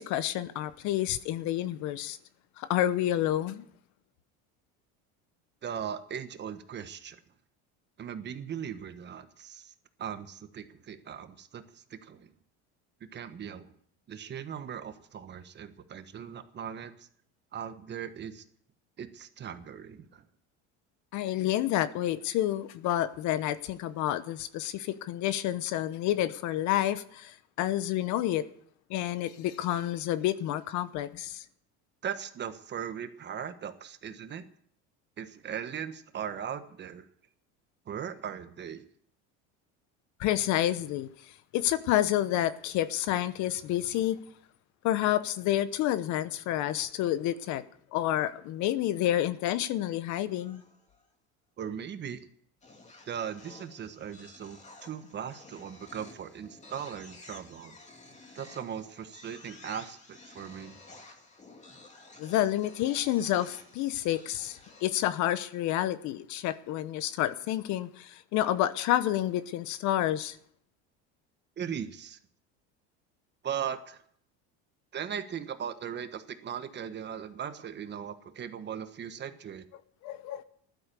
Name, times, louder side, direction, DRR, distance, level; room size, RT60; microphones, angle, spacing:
voice 1, 0.0-2.2 2.6-3.7 21.1-28.4 28.9-31.4 40.2-44.2 44.8-47.6 47.9-50.6 62.2-70.4 80.0-80.4, left 13 dB, 60° left, 1.0 m, -29 dB
voice 2, 5.6-7.2 8.0-9.7 10.0-12.3 13.1-13.7 14.1-17.1 17.5-18.4 19.0-20.2 32.0-34.5 35.2-37.1 37.9-38.8 51.6-52.2 53.1-57.8 58.3-60.8 71.6-72.2 73.4-74.0 74.9-79.6, right 8 dB, 35° right, 1.3 m, -39 dB
sound 1, 50.3-51.1 52.6-65.6, left 2 dB, 20° left, 2.5 m, -53 dB
15.0 x 12.0 x 6.8 m
cardioid pair, 130°, 33 cm